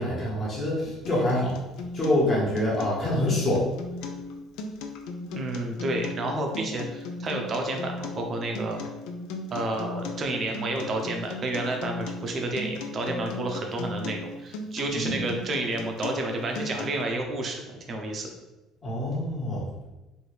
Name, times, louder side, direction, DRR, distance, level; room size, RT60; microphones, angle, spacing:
voice 1, 0.0-1.6 1.9-3.6 14.9-15.2 18.8-19.6, left 1 dB, 25° left, -6 dB, 1.4 m, -26 dB
Acoustic guitar, 1.0-17.0, left 2 dB, 80° left, 0.4 m, -37 dB
voice 2, 5.3-8.8 9.5-18.3, right 2 dB, 30° right, 2 dB, 0.6 m, -30 dB
4.4 x 2.7 x 3.3 m, 1.1 s
cardioid pair, 165°, 0 cm